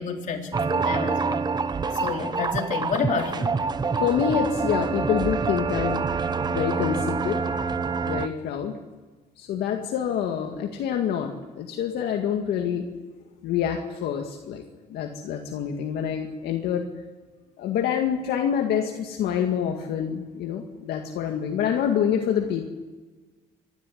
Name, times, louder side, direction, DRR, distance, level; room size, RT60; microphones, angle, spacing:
voice 1, 0.0-1.4 1.9-3.6, left 6 dB, 50° left, 2 dB, 3.9 m, -29 dB
sound 1, 0.5-8.3, right 4 dB, 25° right, 1.0 m, -26 dB
voice 2, 4.0-6.0 6.5-7.4 8.0-8.7 9.4-12.9 13.4-14.6 14.9-16.8 17.6-22.7, left 8 dB, 75° left, 2 dB, 2.1 m, -26 dB
25.5 x 12.5 x 9.8 m, 1.3 s
cardioid pair, 110°, 17 cm